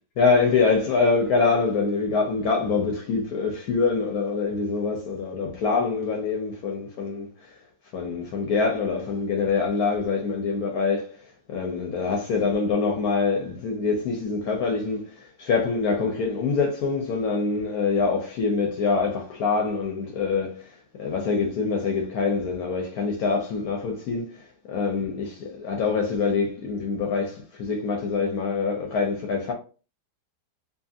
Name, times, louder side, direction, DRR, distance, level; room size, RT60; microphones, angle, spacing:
voice 1, 0.2-7.3 7.9-11.1 11.5-20.7 21.0-29.5, left 4 dB, 70° left, 1.1 m, -25 dB
2.7 x 2.6 x 2.4 m
omnidirectional pair, 1.7 m